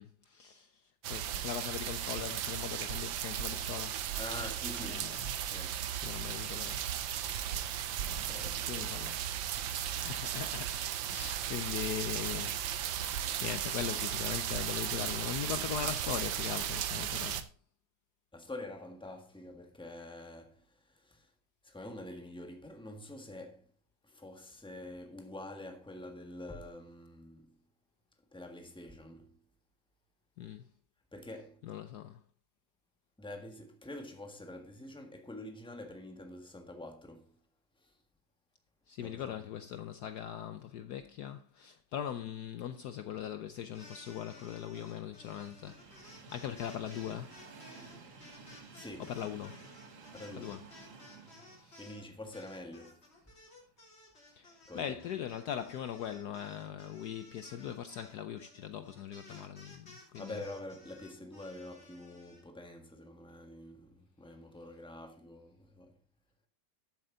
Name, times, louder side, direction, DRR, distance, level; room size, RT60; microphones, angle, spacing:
voice 1, 0.0-4.2 4.8-5.5 6.0-6.9 7.4-7.6 8.0-9.2 9.9-12.6 12.9-17.5 30.4-30.7 31.6-32.2 38.9-47.4 49.1-49.7 50.4-50.6 51.2-52.0 54.3-60.4, left 9 dB, 65° left, 1.1 m, -41 dB
sound 1, 1.0-17.4, right 10 dB, 75° right, 1.6 m, -36 dB
voice 2, 4.2-5.8 8.3-9.0 15.8-16.0 18.3-21.3 21.6-23.7 24.0-27.6 28.3-29.4 31.1-31.6 33.2-37.4 37.8-37.9 39.0-39.5 48.7-49.1 50.1-50.6 51.8-53.1 54.7-55.0 59.9-66.0, left 1 dB, 5° left, 1.4 m, -46 dB
sound 2, 43.6-52.0 52.3-62.4, left 2 dB, 30° left, 3.4 m, -56 dB
Train, 43.6-53.7 54.2-54.3 55.4-55.5, right 4 dB, 45° right, 1.5 m, -55 dB
13.5 x 7.7 x 3.8 m
omnidirectional pair, 2.1 m